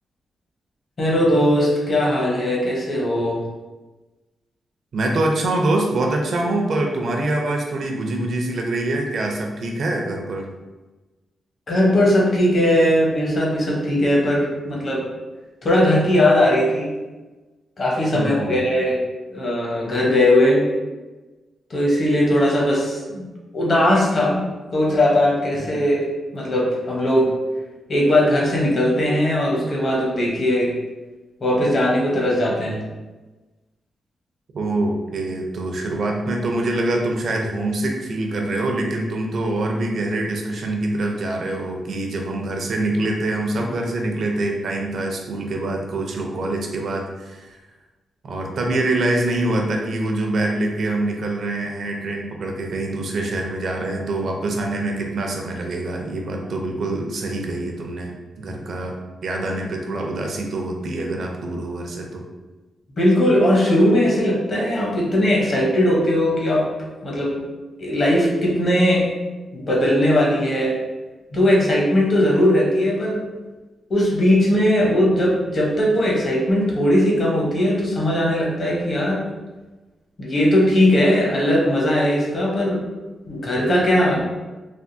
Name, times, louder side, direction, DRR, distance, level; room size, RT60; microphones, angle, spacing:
voice 1, 1.0-3.4 11.7-15.0 15.6-16.9 17.8-19.0 19.3-20.6 21.7-23.3 23.5-24.4 24.7-26.0 26.3-27.3 27.9-30.7 31.4-32.8 63.0-66.6 67.0-67.4 67.8-69.0 69.5-70.7 71.3-73.2 73.9-79.2 80.2-82.8 83.3-84.2, left 1 dB, 45° left, -3 dB, 0.9 m, -19 dB
voice 2, 4.9-10.4 18.1-18.7 34.5-47.5 48.2-58.1 58.4-59.0 59.2-62.2, right 2 dB, 60° right, 1 dB, 0.5 m, -25 dB
3.4 x 2.3 x 2.6 m, 1.2 s
wide cardioid pair, 120°, 0 cm